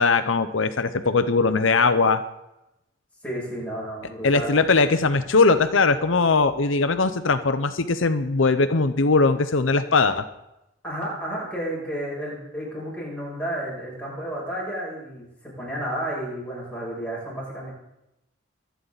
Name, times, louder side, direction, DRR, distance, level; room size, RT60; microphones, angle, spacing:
voice 1, 0.0-2.2 4.2-10.2, left 4 dB, 85° left, 10 dB, 0.8 m, -20 dB
voice 2, 3.2-4.6 10.8-17.7, right 1 dB, 5° left, -6 dB, 7.3 m, -32 dB
24.5 x 9.5 x 4.1 m, 0.88 s
head